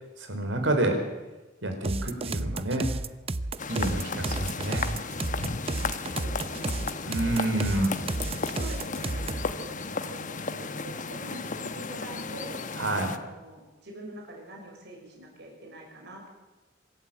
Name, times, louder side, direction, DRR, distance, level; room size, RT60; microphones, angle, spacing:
voice 1, 0.2-0.9 1.6-2.9 3.7-4.9 7.0-7.9 12.8-13.2, right 1 dB, 80° right, 5 dB, 4.6 m, -28 dB
sound 1, 1.8-9.5, right 2 dB, 30° right, 0.7 m, -32 dB
sound 2, 3.6-13.2, left 4 dB, 45° left, 1.1 m, -34 dB
voice 2, 6.1-6.9 7.4-8.0 8.3-12.6 13.1-16.3, right 1 dB, 60° right, 0 dB, 6.6 m, -45 dB
24.5 x 13.5 x 8.8 m, 1.1 s
head